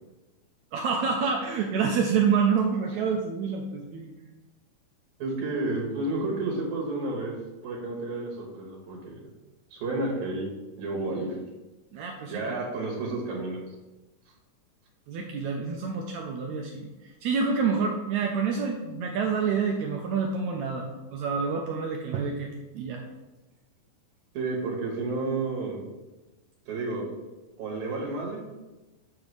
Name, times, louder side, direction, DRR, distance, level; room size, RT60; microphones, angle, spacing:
voice 1, 0.7-4.1 11.9-12.5 15.1-23.0, right 5 dB, 85° right, 2 dB, 1.7 m, -28 dB
voice 2, 5.2-7.3 7.6-9.2 9.7-10.5 10.8-11.4 12.3-13.6 24.3-25.8 26.7-27.1 27.6-28.4, right 2 dB, 65° right, -2 dB, 2.5 m, -31 dB
7.1 x 6.6 x 3.2 m, 1.1 s
omnidirectional pair, 3.9 m